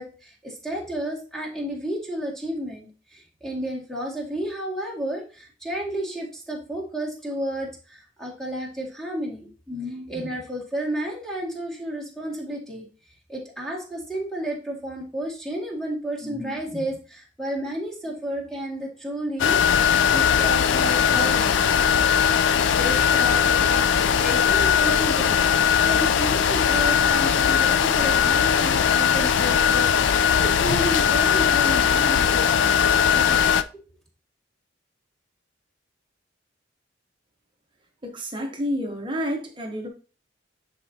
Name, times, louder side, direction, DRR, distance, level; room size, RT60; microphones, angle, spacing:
voice 1, 0.0-12.9 13.3-21.6 22.1-22.3 22.7-32.8 33.1-33.5, right 1 dB, 5° left, -3 dB, 1.9 m, -32 dB
sound 1, 19.4-33.6, left 8 dB, 75° left, 0.3 m, -19 dB
voice 2, 38.0-39.9, equal, 25° right, 3 dB, 0.9 m, -29 dB
10.0 x 4.3 x 2.8 m, 0.36 s
head